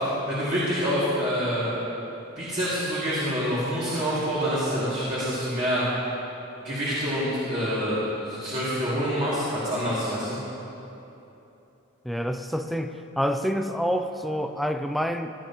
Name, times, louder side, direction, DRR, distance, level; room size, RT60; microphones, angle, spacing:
voice 1, 0.3-1.8 2.4-5.8 6.6-10.4, equal, 40° right, -11 dB, 2.6 m, -26 dB
voice 2, 12.0-15.3, equal, ahead, 6 dB, 0.4 m, -27 dB
17.5 x 11.5 x 3.1 m, 2.9 s
head